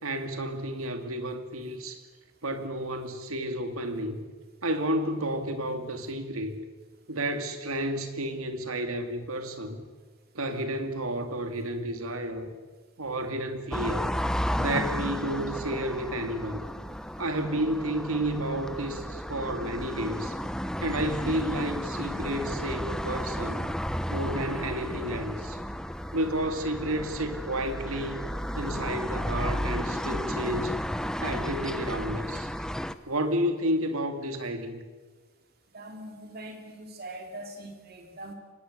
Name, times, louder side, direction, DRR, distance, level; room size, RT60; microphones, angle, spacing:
voice 1, 0.0-2.0 2.4-4.2 4.6-6.5 7.1-9.8 10.3-12.5 13.0-14.1 14.6-16.6 17.2-20.3 20.8-23.7 24.1-25.6 26.1-28.2 28.6-30.8 31.2-32.5 33.1-34.8, right 1 dB, 85° right, 8 dB, 2.7 m, -31 dB
sound 1, 13.7-32.9, equal, 5° left, 0.8 m, -33 dB
voice 2, 35.7-38.3, right 1 dB, 45° right, 4 dB, 3.0 m, -42 dB
25.0 x 19.5 x 8.2 m, 1.4 s
head